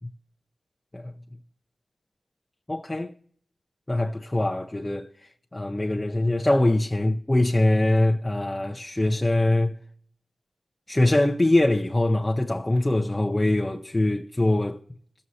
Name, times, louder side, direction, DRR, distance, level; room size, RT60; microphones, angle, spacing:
voice 1, 2.7-3.1 3.9-9.8 10.9-14.8, left 1 dB, 20° left, 0.7 m, -23 dB
20.0 x 7.7 x 2.8 m
cardioid pair, 40°, 0 cm